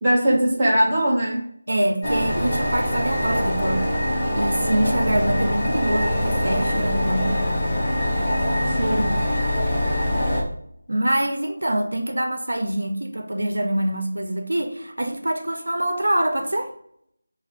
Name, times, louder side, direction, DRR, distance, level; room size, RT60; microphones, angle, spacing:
voice 1, 0.0-1.5 8.7-9.2, right 1 dB, 15° right, 1.0 m, -21 dB
voice 2, 1.7-4.0 4.3-7.4 10.9-16.7, right 1 dB, 90° right, 0.7 m, -25 dB
sound 1, 2.0-10.4, left 1 dB, 10° left, 1.0 m, -23 dB
5.6 x 2.6 x 2.5 m
figure-of-eight pair, 175°, 0 cm